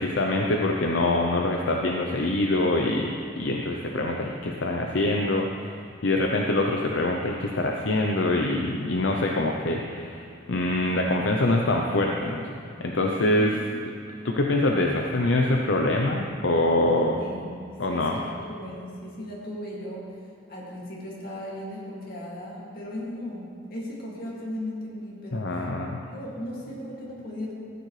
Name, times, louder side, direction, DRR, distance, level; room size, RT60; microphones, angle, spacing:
voice 1, 0.0-12.5 12.8-13.6 14.2-17.2 17.8-18.1 25.3-26.0, left 2 dB, 70° left, 1 dB, 0.6 m, -25 dB
voice 2, 13.4-13.7 17.2-17.5 17.9-20.1 20.5-25.7 26.1-27.5, left 1 dB, 50° left, -5 dB, 2.4 m, -37 dB
14.0 x 9.2 x 3.3 m, 2.4 s
head